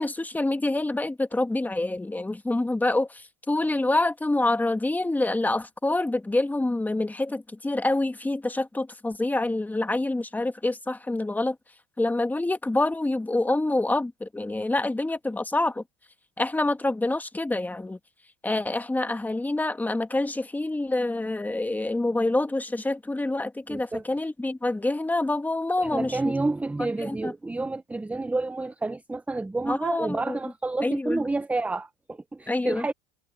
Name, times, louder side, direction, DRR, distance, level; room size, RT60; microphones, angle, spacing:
voice 1, 0.0-11.6 12.0-15.8 16.4-18.0 18.4-26.3 27.0-27.3 29.7-30.4 30.8-31.3 32.5-32.9, left 2 dB, 10° left, 1.5 m, -26 dB
voice 2, 23.7-24.0 25.8-32.9, right 2 dB, 5° right, 0.6 m, -29 dB
supercardioid pair, 105°, 19 cm